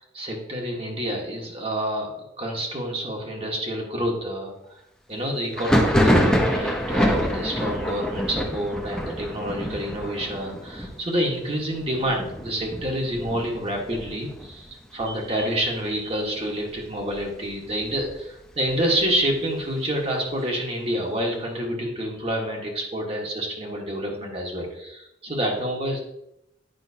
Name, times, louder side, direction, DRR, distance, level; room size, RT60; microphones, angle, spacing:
voice 1, 0.0-4.5 5.1-26.0, equal, 35° right, 0 dB, 1.4 m, -28 dB
Thunder, 5.5-15.0 15.3-17.2 17.6-19.3, equal, 5° left, 0.8 m, -26 dB
8.9 x 5.4 x 2.8 m, 0.82 s
head